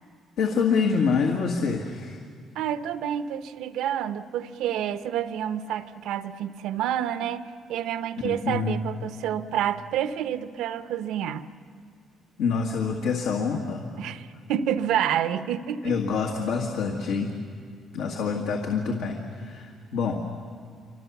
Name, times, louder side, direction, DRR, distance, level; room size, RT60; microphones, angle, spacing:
voice 1, 0.4-2.2 8.2-8.8 12.4-13.8 15.8-17.3 17.9-20.2, left 5 dB, 85° left, 1 dB, 2.0 m, -26 dB
voice 2, 2.5-11.5 14.0-16.0, right 10 dB, 90° right, 11 dB, 0.8 m, -29 dB
28.0 x 25.5 x 7.2 m, 2.1 s
cardioid pair, 135°, 0 cm